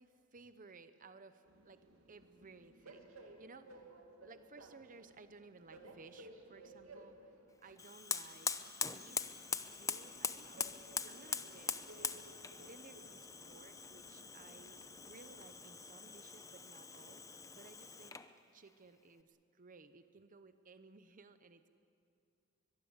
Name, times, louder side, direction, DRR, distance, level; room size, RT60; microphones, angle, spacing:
voice 1, 0.0-3.9 4.2-7.2 7.6-9.4 9.7-10.7 11.1-12.4 12.6-14.8 15.0-18.2 18.5-21.7, right 4 dB, 40° right, 10 dB, 0.8 m, -59 dB
Train, 1.5-15.4, right 2 dB, 80° right, 2.7 m, -59 dB
Fire, 7.8-18.3, left 5 dB, 15° left, 0.8 m, -43 dB
22.5 x 22.0 x 8.1 m, 2.5 s
head